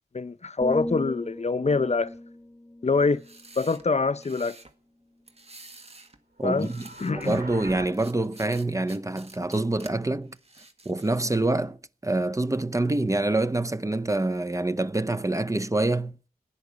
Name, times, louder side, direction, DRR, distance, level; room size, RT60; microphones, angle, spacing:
voice 1, 0.1-2.1 2.8-3.2 3.6-4.5 6.4-6.7 7.0-7.4, left 4 dB, 45° left, 0.7 m, -25 dB
sound 1, 0.6-4.5 5.0-5.3, left 1 dB, 10° left, 1.6 m, -38 dB
sound 2, 3.0-4.7 5.3-6.2 6.5-7.4 7.9-9.9 10.3-11.4, right 2 dB, 40° right, 1.7 m, -49 dB
voice 2, 6.4-10.4 10.8-16.2, right 2 dB, 20° right, 0.7 m, -26 dB
sound 3, 6.5-7.9, right 3 dB, 65° right, 2.5 m, -41 dB
16.0 x 10.5 x 8.1 m
wide cardioid pair, 85°, 16 cm